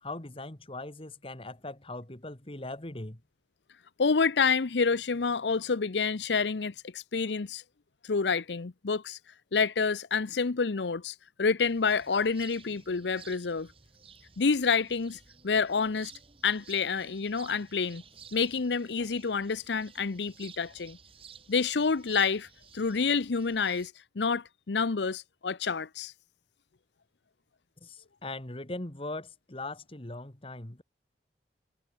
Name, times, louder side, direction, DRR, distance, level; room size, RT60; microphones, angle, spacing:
voice 1, 0.0-3.2 27.8-30.8, left 2 dB, 30° left, 2.0 m, -40 dB
voice 2, 4.0-7.6 8.0-9.2 9.5-13.7 14.4-16.1 16.4-18.0 18.3-21.0 21.5-22.5 22.7-26.1, left 5 dB, 80° left, 0.7 m, -28 dB
sound 1, 11.6-23.9, right 6 dB, 30° right, 2.7 m, -54 dB
head